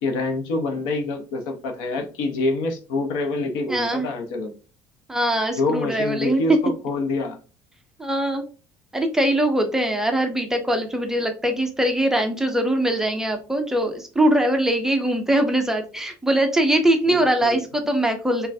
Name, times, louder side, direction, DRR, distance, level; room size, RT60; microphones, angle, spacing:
voice 1, 0.0-4.6 5.6-7.4 17.1-17.6, left 3 dB, 75° left, 4 dB, 0.9 m, -26 dB
voice 2, 3.7-4.1 5.1-6.4 8.0-8.4 8.9-18.5, right 1 dB, 5° right, 5 dB, 0.4 m, -22 dB
5.4 x 2.3 x 2.6 m, 0.35 s
cardioid pair, 175°, 7 cm